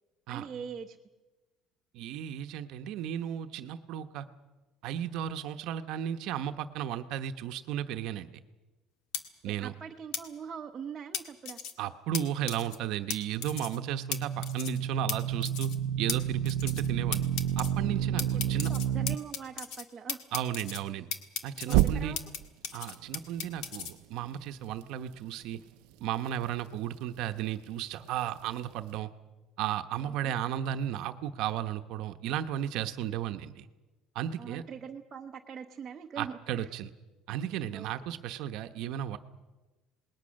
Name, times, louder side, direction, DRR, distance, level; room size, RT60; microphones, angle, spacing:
voice 1, 0.3-1.0 9.4-11.6 18.2-20.2 21.7-22.2 30.0-30.3 34.4-36.7 37.7-37.9, right 7 dB, 20° right, 2 dB, 0.9 m, -43 dB
voice 2, 1.9-4.3 4.8-8.3 9.4-9.7 11.8-15.7 16.0-17.2 17.6-18.7 20.3-21.1 21.4-22.2 22.7-25.6 26.0-29.1 29.6-33.7 34.1-34.6 36.2-36.9 37.3-39.2, right 10 dB, 55° right, 8 dB, 0.9 m, -34 dB
sound 1, 9.1-9.2 10.1-10.2 11.1-11.7 12.1-12.2 12.5-12.8 13.1-13.2 13.4-13.8 14.1-14.2 14.4-14.8 15.1-15.2 15.4-15.8 16.1-16.2 16.5-16.9 17.1-17.7 18.2-19.8 20.1-20.8 21.1-22.4 22.6-23.9, left 7 dB, 60° left, 1.8 m, -35 dB
sound 2, 13.4-19.2 21.7-22.4, right 10 dB, 80° right, 0.6 m, -30 dB
27.0 x 20.0 x 6.4 m, 1.2 s
cardioid pair, 175°, 0 cm